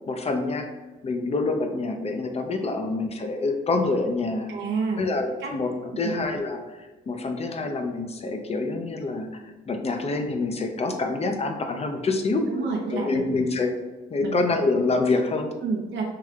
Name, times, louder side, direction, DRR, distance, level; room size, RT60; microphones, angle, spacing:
voice 1, 0.1-0.7 1.0-4.5 5.0-12.4 12.9-13.7 14.1-15.5, left 3 dB, 30° left, 5 dB, 0.6 m, -26 dB
voice 2, 4.5-5.0 5.4-5.5 5.9-6.2 12.5-13.4 14.2-14.5 15.6-16.0, right 4 dB, 70° right, -2 dB, 0.7 m, -29 dB
4.7 x 3.1 x 2.4 m, 1.2 s
cardioid pair, 90°, 20 cm